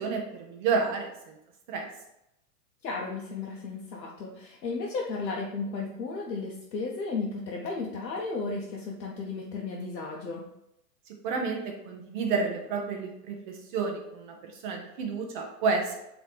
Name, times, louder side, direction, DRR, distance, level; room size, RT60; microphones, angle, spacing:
voice 1, 0.0-1.3 1.7-1.9 11.2-16.0, right 4 dB, 30° right, 2 dB, 0.5 m, -30 dB
voice 2, 2.8-10.5, left 3 dB, 85° left, -2 dB, 0.8 m, -34 dB
3.8 x 2.9 x 3.3 m, 0.84 s
hypercardioid pair, 125°, 50 cm